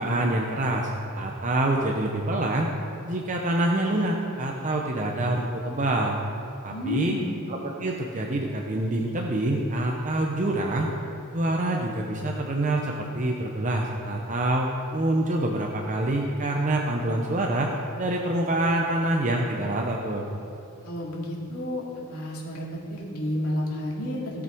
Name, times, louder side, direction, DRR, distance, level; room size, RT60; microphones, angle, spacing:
voice 1, 0.0-2.7 3.0-6.2 6.6-7.1 7.8-10.9 11.3-17.7 18.0-20.2, right 1 dB, 35° right, 0 dB, 0.7 m, -26 dB
voice 2, 6.7-7.4 20.8-21.8 22.1-24.4, left 1 dB, 85° left, -4 dB, 2.4 m, -31 dB
17.0 x 6.2 x 4.5 m, 2.8 s
head